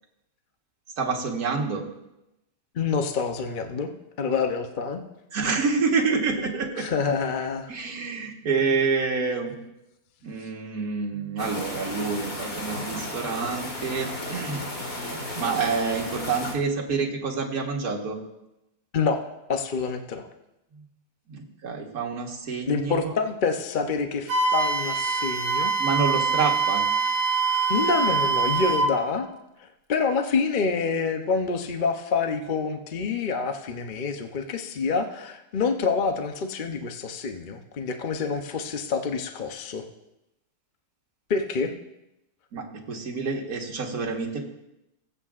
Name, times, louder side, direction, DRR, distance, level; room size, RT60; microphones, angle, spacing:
voice 1, 1.0-1.8 5.3-6.9 7.7-9.6 10.2-14.6 15.4-18.2 21.3-23.1 25.8-26.8 42.5-44.4, right 4 dB, 70° right, 0 dB, 1.9 m, -27 dB
voice 2, 2.7-3.9 4.2-5.0 6.8-7.7 18.9-19.2 19.5-20.3 22.6-25.7 27.7-29.3 29.6-39.8 41.3-41.7, left 5 dB, 45° left, 5 dB, 0.6 m, -27 dB
sound 1, 11.4-16.5, left 1 dB, 85° left, 3.0 m, -34 dB
Wind instrument woodwind instrument, 24.3-28.9, right 4 dB, 90° right, 1.6 m, -24 dB
20.0 x 8.3 x 2.5 m, 0.91 s
omnidirectional pair, 1.7 m